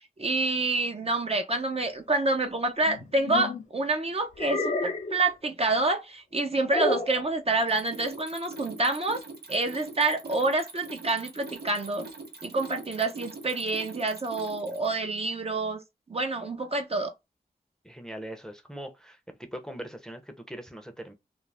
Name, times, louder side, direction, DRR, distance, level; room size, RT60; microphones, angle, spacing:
voice 1, 0.2-9.2 9.5-12.1 12.4-15.8 16.1-17.1, right 2 dB, 40° right, 0.6 m, -27 dB
sound 1, 2.8-3.6 4.4-5.2 6.7-7.2, left 3 dB, 50° left, 0.5 m, -30 dB
Mechanisms, 7.5-15.0, right 3 dB, 80° right, 0.8 m, -43 dB
voice 2, 17.8-19.2 19.5-21.1, right 1 dB, 5° left, 0.6 m, -41 dB
2.4 x 2.0 x 3.2 m
cardioid pair, 50°, 16 cm